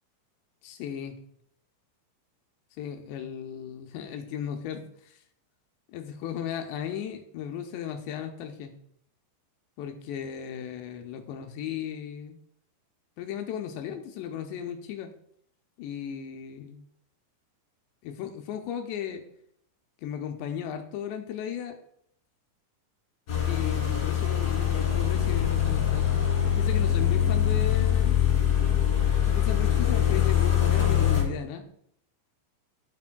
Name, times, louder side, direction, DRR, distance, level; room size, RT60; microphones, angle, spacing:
voice 1, 0.6-1.2 2.8-5.2 5.9-8.7 9.8-12.4 13.2-15.1 15.8-16.8 18.0-19.3 20.0-21.8 23.4-26.2 26.6-28.2 29.3-31.6, left 9 dB, 80° left, 5 dB, 2.7 m, -36 dB
sound 1, 23.3-31.2, left 10 dB, 40° left, 2.5 m, -23 dB
11.5 x 6.0 x 2.2 m, 0.68 s
omnidirectional pair, 5.2 m